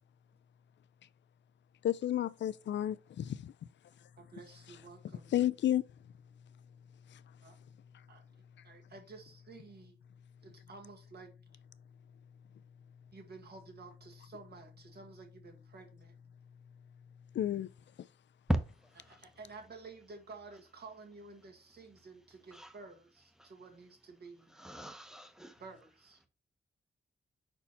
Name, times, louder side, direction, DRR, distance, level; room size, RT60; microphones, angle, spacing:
voice 1, 1.8-3.5 5.3-5.8 17.3-17.7, left 11 dB, 70° left, 0.4 m, -31 dB
voice 2, 4.2-5.5 7.4-7.6 8.1-8.2 8.6-9.9 10.4-11.3 13.1-16.1 19.1-24.6 25.6-26.3, right 4 dB, 60° right, 1.8 m, -52 dB
voice 3, 24.6-25.6, right 1 dB, 5° right, 0.9 m, -36 dB
5.6 x 4.4 x 4.1 m
wide cardioid pair, 120°, 19 cm